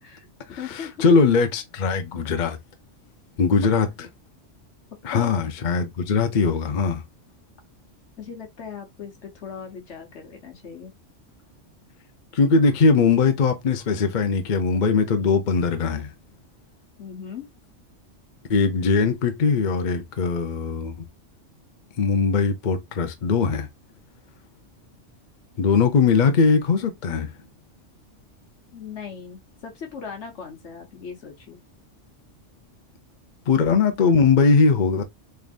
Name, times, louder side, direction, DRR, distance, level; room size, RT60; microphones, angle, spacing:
voice 1, 0.0-1.0 4.0-4.1 5.1-5.3 8.2-10.9 17.0-17.5 28.7-31.6, left 6 dB, 65° left, 1.3 m, -38 dB
voice 2, 0.7-2.6 3.4-3.9 5.0-7.0 12.3-16.1 18.5-21.0 22.0-23.7 25.6-27.3 33.5-35.0, left 5 dB, 50° left, 0.7 m, -20 dB
3.7 x 3.3 x 2.4 m
omnidirectional pair, 1.3 m